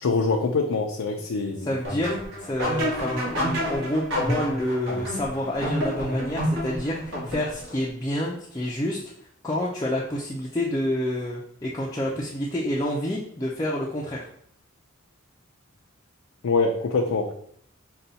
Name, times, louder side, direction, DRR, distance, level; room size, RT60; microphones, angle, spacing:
voice 1, 0.0-1.6 16.4-17.3, left 3 dB, 90° left, 2 dB, 0.5 m, -24 dB
voice 2, 1.6-9.0 9.4-14.3, left 1 dB, 15° left, -4 dB, 0.5 m, -28 dB
sound 1, 1.8-7.8, equal, 60° right, 1.5 m, -29 dB
5.4 x 2.3 x 3.9 m, 0.66 s
head